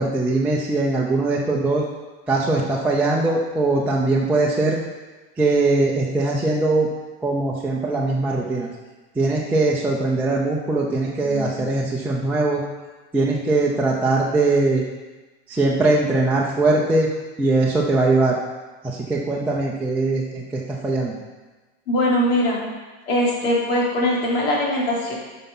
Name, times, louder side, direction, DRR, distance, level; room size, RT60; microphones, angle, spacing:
voice 1, 0.0-1.8 2.3-4.8 5.4-6.9 7.2-8.7 9.1-12.6 13.1-14.8 15.5-17.1 17.4-18.4 18.8-21.2, right 2 dB, 5° right, -5 dB, 0.6 m, -21 dB
voice 2, 11.2-11.5 21.9-22.6 23.1-25.1, left 1 dB, 80° left, -4 dB, 3.3 m, -21 dB
9.5 x 5.8 x 5.4 m, 1.2 s
supercardioid pair, 165°, 30 cm